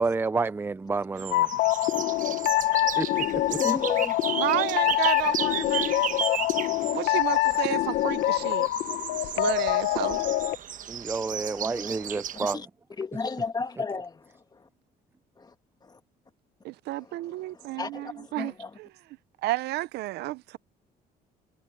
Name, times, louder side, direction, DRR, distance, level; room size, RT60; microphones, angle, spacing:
voice 1, 0.0-1.5 3.0-3.1 3.3-3.6 10.9-12.6, right 4 dB, 15° right, 0.4 m, -29 dB
sound 1, 1.2-12.5, right 9 dB, 50° right, 1.1 m, -35 dB
sound 2, 1.3-10.6, left 16 dB, 75° left, 1.2 m, -25 dB
voice 2, 3.5-4.3 4.9-5.0 7.6-7.9 9.3-9.4 9.9-10.1 11.3-12.7 13.0-14.7 15.4-15.5 15.8-16.0 17.0-18.8, left 4 dB, 25° left, 1.6 m, -36 dB
voice 3, 4.4-6.1 6.9-8.7 9.2-10.3 16.6-18.5 18.8-18.9 19.4-20.6, right 17 dB, 80° right, 0.7 m, -31 dB
cardioid pair, 110°, 17 cm